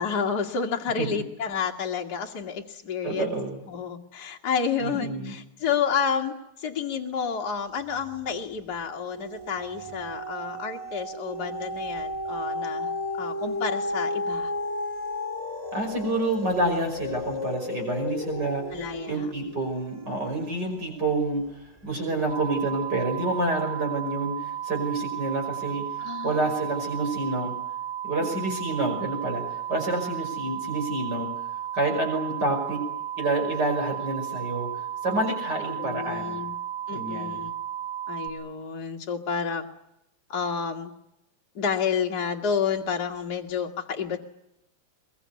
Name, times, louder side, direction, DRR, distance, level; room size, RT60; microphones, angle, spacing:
voice 1, 0.0-3.3 3.7-12.9 13.2-14.5 18.7-19.3 26.0-26.4 28.2-28.5 35.7-36.5 36.9-37.5 38.1-39.7 40.3-40.9 41.6-44.2, left 6 dB, 50° left, 1 dB, 2.3 m, -30 dB
voice 2, 3.0-3.6 4.8-5.3 15.7-21.4 21.8-27.5 28.0-31.3 31.7-32.8 33.2-34.7 35.0-36.4 36.9-37.4, right 2 dB, 50° right, 3 dB, 6.1 m, -28 dB
sound 1, 7.9-8.4 8.8-21.3 21.8-21.9, left 2 dB, 20° right, 2.1 m, -34 dB
sound 2, 22.3-38.3, right 10 dB, 70° right, 4.7 m, -34 dB
22.5 x 22.0 x 9.6 m, 0.84 s
omnidirectional pair, 2.3 m